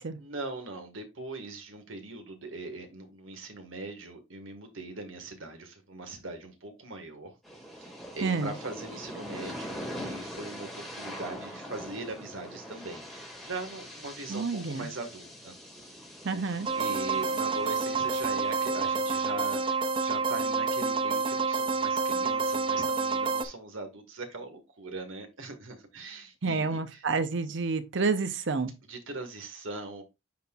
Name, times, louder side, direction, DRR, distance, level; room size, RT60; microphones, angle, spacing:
voice 1, 0.2-7.4 7.8-16.0 16.3-27.1 27.5-27.6 28.8-30.0, right 2 dB, 80° right, 1.6 m, -41 dB
sound 1, 7.4-19.2, equal, ahead, 2.0 m, -43 dB
voice 2, 8.2-8.5 14.3-14.9 16.2-16.7 26.4-28.7, right 4 dB, 65° right, 0.7 m, -29 dB
sound 2, 16.6-23.4, right 4 dB, 25° right, 0.6 m, -28 dB
9.4 x 4.3 x 2.4 m
head